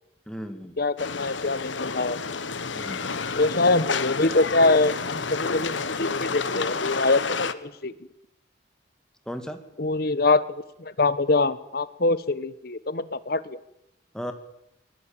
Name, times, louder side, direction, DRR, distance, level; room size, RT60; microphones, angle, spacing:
voice 1, 0.3-0.8 2.7-3.1 9.3-9.6 14.1-14.3, equal, 5° left, 7 dB, 2.2 m, -35 dB
voice 2, 0.8-2.2 3.4-7.9 9.8-10.4 10.8-13.6, left 3 dB, 55° left, 15 dB, 1.2 m, -24 dB
sound 1, 1.0-7.5, left 4 dB, 85° left, 1.3 m, -30 dB
23.5 x 21.0 x 9.0 m, 0.86 s
head